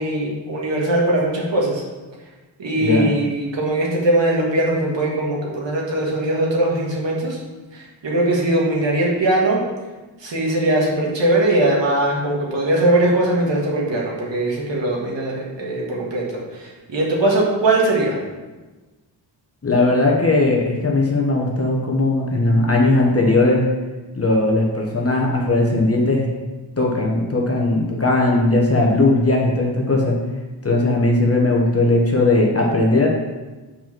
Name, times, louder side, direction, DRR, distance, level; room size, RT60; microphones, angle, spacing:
voice 1, 0.0-1.8 2.6-7.4 7.7-9.6 10.2-18.2, right 1 dB, 70° right, -3 dB, 1.8 m, -20 dB
voice 2, 19.6-23.6 24.2-26.3 26.8-30.2 30.6-33.1, left 2 dB, 30° left, -1 dB, 1.0 m, -18 dB
5.6 x 5.2 x 6.0 m, 1.2 s
wide cardioid pair, 140°, 45 cm